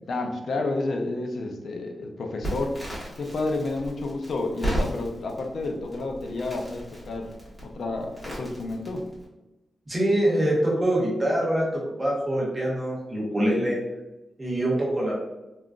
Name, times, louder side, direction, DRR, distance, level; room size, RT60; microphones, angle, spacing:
voice 1, 0.1-2.8 3.2-7.3 7.6-9.0, left 2 dB, 60° left, 3 dB, 0.5 m, -30 dB
Crackle, 2.4-9.2, right 1 dB, 10° left, 1.0 m, -35 dB
voice 2, 9.9-13.8 14.4-15.1, right 1 dB, 20° right, -4 dB, 0.8 m, -24 dB
3.7 x 2.4 x 2.3 m, 1.0 s
wide cardioid pair, 165°, 0 cm